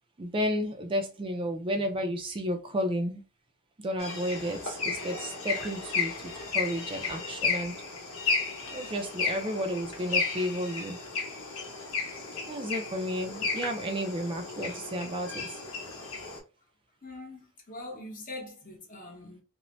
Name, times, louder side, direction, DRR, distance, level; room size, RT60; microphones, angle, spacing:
voice 1, 0.2-3.2 3.8-7.8 8.7-11.0 12.5-15.6, equal, 25° right, 0.4 m, -32 dB
sound 1, 4.0-16.4, left 4 dB, 80° left, 1.0 m, -33 dB
voice 2, 17.0-19.4, left 2 dB, 40° left, 0.9 m, -43 dB
2.6 x 2.0 x 3.0 m
head